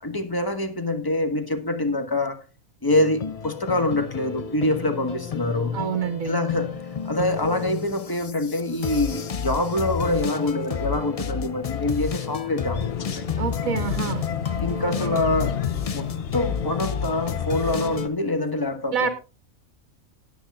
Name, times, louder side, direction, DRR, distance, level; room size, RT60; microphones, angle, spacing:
voice 1, 0.0-2.4 2.8-5.8 6.2-6.8 7.0-13.4 14.6-15.6 15.9-19.1, left 2 dB, 15° left, 1.3 m, -25 dB
sound 1, 2.9-18.1, left 6 dB, 70° left, 0.3 m, -31 dB
voice 2, 5.7-6.4 13.4-14.2 18.9-19.1, right 7 dB, 75° right, 1.6 m, -26 dB
sound 2, 12.7-18.1, left 8 dB, 50° left, 0.9 m, -32 dB
19.5 x 8.5 x 2.4 m
omnidirectional pair, 1.4 m